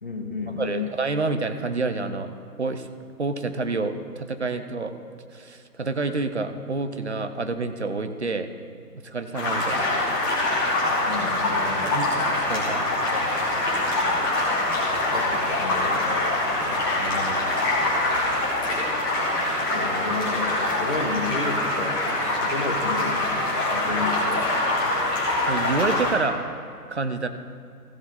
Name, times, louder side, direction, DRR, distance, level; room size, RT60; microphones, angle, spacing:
voice 1, 0.0-0.9 11.1-12.0 15.1-16.8 19.7-24.9, left 3 dB, 35° left, 4 dB, 0.8 m, -33 dB
voice 2, 0.6-2.3 2.6-2.9 3.2-5.0 5.3-8.5 9.0-9.9 11.8-12.9 16.7-17.4 23.9-24.1 25.5-26.4 26.9-27.3, right 3 dB, 45° right, 9 dB, 0.7 m, -28 dB
sound 1, 9.3-26.1, left 2 dB, 15° left, 1.6 m, -24 dB
15.5 x 7.1 x 4.2 m, 2.3 s
figure-of-eight pair, 150°, 47 cm